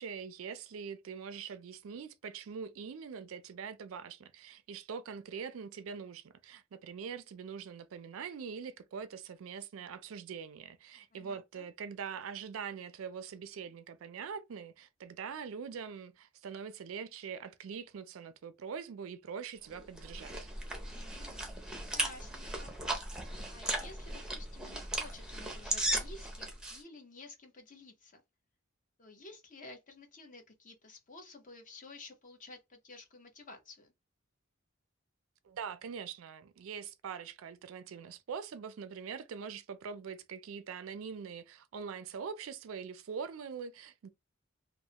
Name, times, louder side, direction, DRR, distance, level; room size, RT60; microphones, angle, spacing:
voice 1, 0.0-20.4 35.4-44.1, right 6 dB, 75° right, 0.4 m, -43 dB
voice 2, 11.1-11.7 20.8-21.5 21.8-22.8 23.5-28.2 29.0-33.9, left 3 dB, 40° left, 0.8 m, -53 dB
sound 1, 19.7-26.8, right 1 dB, 5° right, 0.6 m, -37 dB
3.1 x 2.1 x 2.8 m
head